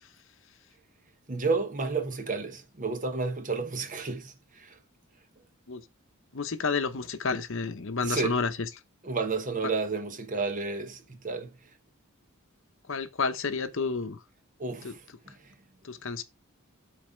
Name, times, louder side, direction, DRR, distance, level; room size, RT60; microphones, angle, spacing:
voice 1, 1.3-4.7 8.0-8.4 9.0-11.5 14.6-15.0 15.3-15.4, right 4 dB, 35° right, 1.0 m, -31 dB
voice 2, 6.3-8.6 12.9-14.2 14.8-14.9 15.8-16.2, left 4 dB, 60° left, 0.8 m, -30 dB
7.6 x 4.2 x 5.1 m
head